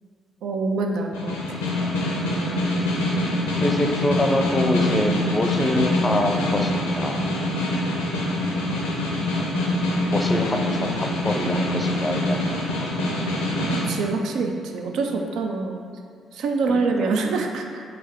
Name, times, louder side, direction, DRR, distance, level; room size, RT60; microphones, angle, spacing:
voice 1, 0.4-1.6 13.7-15.8 16.3-17.8, right 3 dB, 70° right, 3 dB, 0.3 m, -25 dB
Snare drum, 1.1-13.9, left 1 dB, 90° left, 0.5 m, -24 dB
voice 2, 3.6-7.8 10.1-13.3 15.1-15.2 16.7-17.1, left 1 dB, 25° left, 3 dB, 0.5 m, -26 dB
3.4 x 3.3 x 3.5 m, 2.2 s
hypercardioid pair, 45°, 0 cm